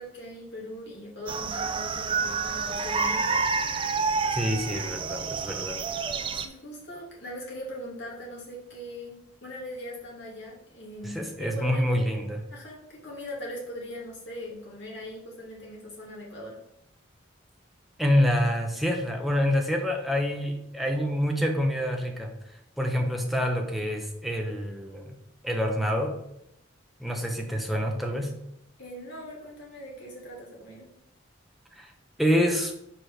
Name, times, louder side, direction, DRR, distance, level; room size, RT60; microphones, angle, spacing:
voice 1, 0.0-3.4 6.3-12.1 12.5-16.6 28.8-30.9, equal, 60° left, -4 dB, 2.1 m, -40 dB
sound 1, 1.3-6.5, right 4 dB, 25° right, 0.4 m, -29 dB
voice 2, 4.3-5.8 11.0-12.4 18.0-22.3 22.8-25.1 25.4-26.2 27.0-28.3 31.7-31.9 32.2-32.7, equal, ahead, 1 dB, 0.8 m, -27 dB
4.8 x 4.6 x 5.0 m, 0.80 s
head